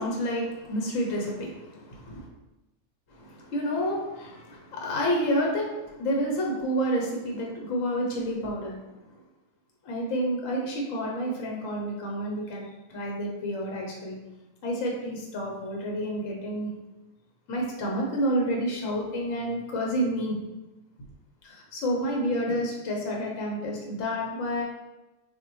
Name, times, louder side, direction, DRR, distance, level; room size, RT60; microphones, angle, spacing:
voice 1, 0.0-2.3 3.1-8.9 9.8-14.2 14.6-16.7 17.5-20.4 21.4-24.6, equal, 75° left, -1 dB, 1.2 m, -29 dB
6.0 x 2.2 x 3.0 m, 1.0 s
omnidirectional pair, 1.4 m